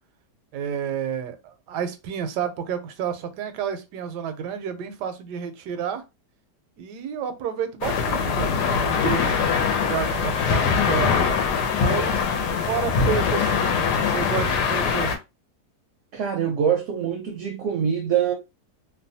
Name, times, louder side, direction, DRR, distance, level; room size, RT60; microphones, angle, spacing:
voice 1, 0.5-6.0 6.8-9.4 9.7-11.2 11.8-12.3 12.7-15.2, right 8 dB, 85° right, 1.2 m, -30 dB
sound 1, 7.8-15.2, left 5 dB, 80° left, 1.2 m, -22 dB
voice 2, 16.1-18.3, right 8 dB, 65° right, 0.8 m, -24 dB
2.9 x 2.2 x 2.6 m
omnidirectional pair, 1.8 m